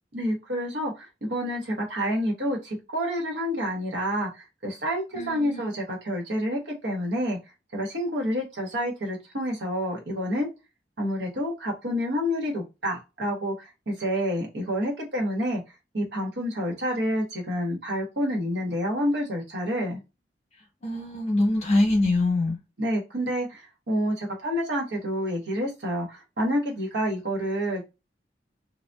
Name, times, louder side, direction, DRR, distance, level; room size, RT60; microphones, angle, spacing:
voice 1, 0.1-7.4 7.7-10.5 11.0-15.6 15.9-20.0 22.8-27.9, equal, 80° right, 1.1 m, -28 dB
voice 2, 5.1-5.7 20.8-22.6, left 2 dB, 40° left, 1.0 m, -24 dB
2.6 x 2.2 x 2.2 m
head